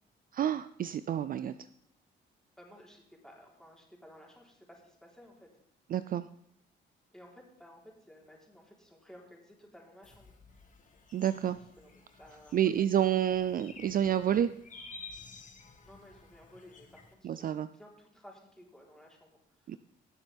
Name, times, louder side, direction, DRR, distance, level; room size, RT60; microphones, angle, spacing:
voice 1, 0.3-1.6 5.9-6.3 11.1-11.6 12.5-14.5 17.2-17.7 19.7-19.8, right 10 dB, 45° right, 14 dB, 0.4 m, -29 dB
voice 2, 2.6-5.5 7.1-10.3 11.8-13.4 15.8-19.8, equal, 5° left, -2 dB, 3.8 m, -56 dB
sound 1, 10.0-17.1, left 4 dB, 40° left, 1.7 m, -52 dB
18.5 x 7.2 x 3.5 m, 0.71 s
cardioid pair, 90°, 20 cm